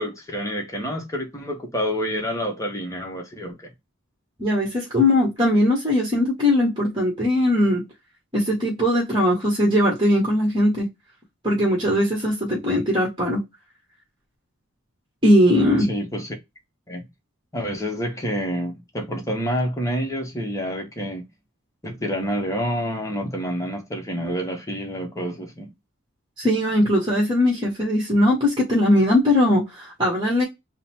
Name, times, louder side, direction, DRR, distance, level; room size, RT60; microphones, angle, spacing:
voice 1, 0.0-3.5 15.9-16.3 16.9-17.0 17.5-21.2 21.8-25.7, equal, 15° left, 0.9 m, -28 dB
voice 2, 4.4-7.8 8.3-10.9 11.4-13.4 15.2-15.9 26.4-30.4, left 1 dB, 25° right, 1.2 m, -20 dB
3.8 x 2.1 x 4.2 m
head